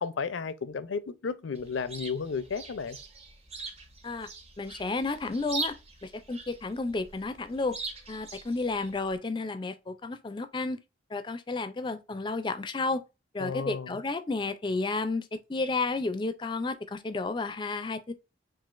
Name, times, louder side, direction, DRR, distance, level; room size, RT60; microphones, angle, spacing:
voice 1, 0.0-3.0 13.4-14.0, left 5 dB, 80° left, 0.5 m, -33 dB
Chirp tweet, 1.5-9.2, right 3 dB, 35° right, 0.7 m, -42 dB
voice 2, 4.6-5.8 6.0-7.8 8.1-10.8 11.1-13.0 13.3-18.1, left 3 dB, 25° left, 0.4 m, -32 dB
6.1 x 2.4 x 2.4 m
head